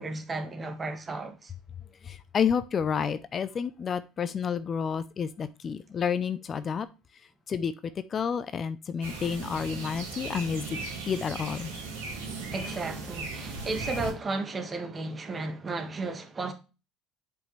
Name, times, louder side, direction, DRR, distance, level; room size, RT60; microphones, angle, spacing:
voice 1, 0.0-1.5 12.5-16.5, right 3 dB, 25° right, 1.5 m, -34 dB
voice 2, 2.0-6.9 7.5-10.8 11.1-11.7, left 7 dB, 40° left, 0.5 m, -30 dB
sound 1, 9.0-14.1, right 3 dB, 75° right, 2.1 m, -37 dB
7.6 x 5.3 x 3.2 m
hypercardioid pair, 65°, 0 cm